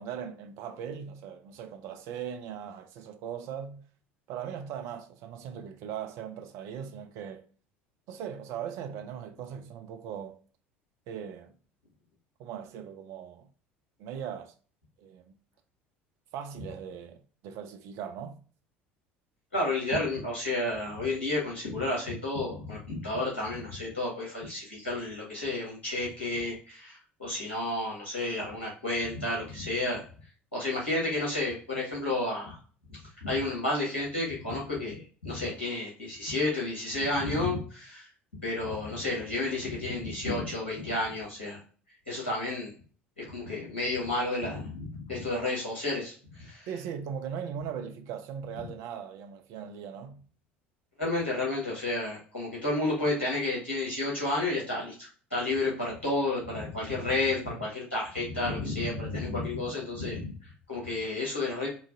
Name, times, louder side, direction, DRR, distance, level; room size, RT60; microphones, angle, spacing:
voice 1, 0.0-3.8 4.3-7.4 8.1-10.4 11.1-11.5 12.4-13.5 14.0-14.5 15.0-15.3 16.3-18.4 46.7-50.2, right 8 dB, 50° right, 0.4 m, -39 dB
voice 2, 19.5-30.0 30.5-32.6 33.2-38.1 38.4-41.6 42.1-42.7 43.2-46.7 51.0-61.7, left 2 dB, 80° left, 1.4 m, -31 dB
3.8 x 2.5 x 2.5 m
figure-of-eight pair, 65°, 6 cm